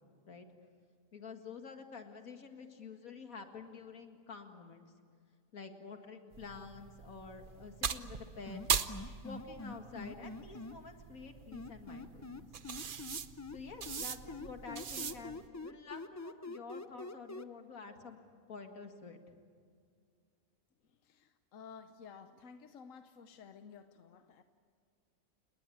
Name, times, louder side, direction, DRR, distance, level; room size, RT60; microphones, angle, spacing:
voice 1, 1.1-4.9 5.5-8.6 9.2-12.5 13.5-18.2 18.5-19.2, left 5 dB, 90° left, 5 dB, 2.4 m, -49 dB
sound 1, 6.3-15.5, right 6 dB, 45° right, 0.9 m, -41 dB
sound 2, 8.5-10.7 11.5-13.6 13.9-17.4, left 3 dB, 30° left, 0.3 m, -44 dB
voice 2, 20.8-24.4, left 6 dB, 70° left, 9 dB, 1.3 m, -54 dB
30.0 x 19.5 x 8.6 m, 2.2 s
omnidirectional pair, 1.4 m